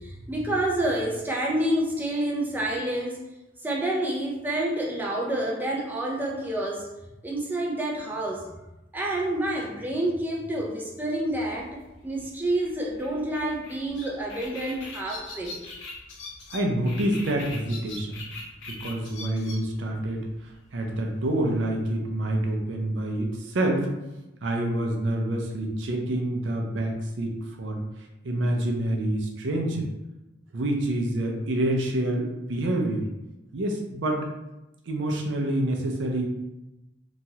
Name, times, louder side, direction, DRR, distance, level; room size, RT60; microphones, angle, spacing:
voice 1, 0.0-3.2 3.6-6.9 7.2-8.5 8.9-15.6, right 1 dB, 10° right, -2 dB, 0.4 m, -28 dB
sound 1, 11.5-21.6, left 3 dB, 85° left, 0.7 m, -42 dB
voice 2, 16.5-18.2 18.7-20.3 20.7-23.9 24.4-27.8 28.2-29.9 30.5-33.0 33.5-34.2 34.9-36.2, right 1 dB, 75° right, 1 dB, 0.5 m, -27 dB
2.9 x 2.3 x 2.7 m, 0.98 s
head